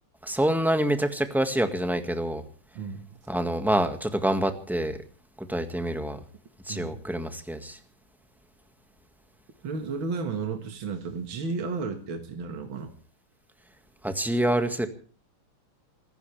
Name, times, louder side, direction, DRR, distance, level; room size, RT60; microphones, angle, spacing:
voice 1, 0.2-2.4 3.3-5.0 5.4-6.2 6.7-7.8 14.0-14.9, right 1 dB, ahead, 7 dB, 1.5 m, -26 dB
voice 2, 6.7-7.0 9.6-12.9, right 4 dB, 65° right, 5 dB, 2.6 m, -33 dB
27.0 x 15.0 x 3.4 m, 0.40 s
omnidirectional pair, 2.4 m